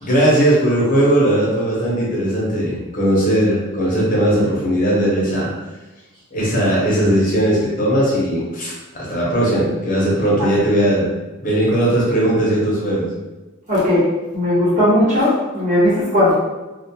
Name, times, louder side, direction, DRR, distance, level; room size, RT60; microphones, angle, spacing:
voice 1, 0.0-5.5 6.3-11.1 11.4-13.1, right 1 dB, 40° left, -5 dB, 0.7 m, -18 dB
voice 2, 13.7-14.0 14.3-16.3, left 1 dB, 40° right, -9 dB, 1.0 m, -16 dB
2.2 x 2.2 x 2.7 m, 1.1 s
head